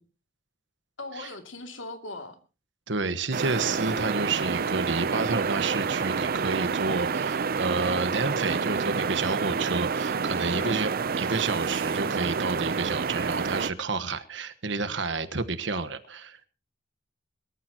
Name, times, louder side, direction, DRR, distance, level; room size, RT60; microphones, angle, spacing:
voice 1, 1.0-2.4 10.5-10.8, left 2 dB, 85° left, 2.6 m, -39 dB
voice 2, 2.9-10.9 11.2-16.5, right 3 dB, 70° right, 1.3 m, -30 dB
sound 1, 3.3-13.7, right 5 dB, 50° right, 0.6 m, -28 dB
22.5 x 14.0 x 3.0 m
head